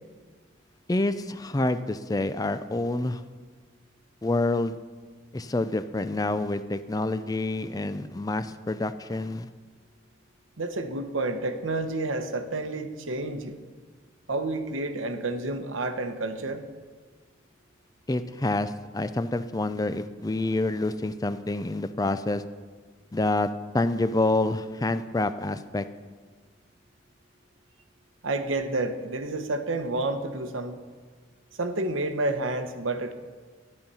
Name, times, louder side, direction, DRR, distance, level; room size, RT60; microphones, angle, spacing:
voice 1, 0.9-3.2 4.2-4.8 5.3-9.5 18.1-22.4 23.1-25.8, left 2 dB, 20° left, 12 dB, 0.4 m, -27 dB
voice 2, 10.6-13.6 14.3-16.6 28.2-30.8 31.6-33.1, right 2 dB, 90° right, 8 dB, 1.1 m, -29 dB
13.0 x 10.5 x 5.6 m, 1.5 s
head